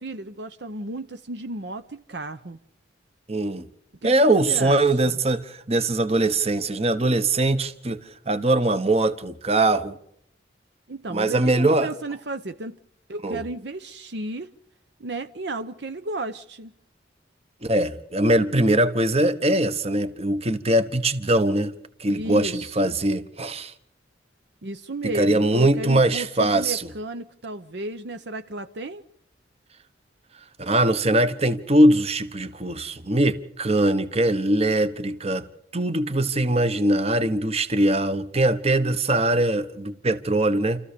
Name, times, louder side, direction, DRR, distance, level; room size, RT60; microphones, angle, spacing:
voice 1, 0.0-2.6 4.0-5.2 10.9-12.8 13.1-14.5 15.0-16.7 22.1-22.9 24.6-29.0, right 2 dB, 60° right, 0.8 m, -33 dB
voice 2, 3.3-3.6 4.0-8.0 8.3-10.0 11.1-11.9 13.2-13.4 17.6-21.7 22.0-23.7 25.0-26.8 30.6-35.4 35.7-40.8, right 1 dB, 35° right, 1.2 m, -21 dB
29.0 x 14.5 x 6.9 m
head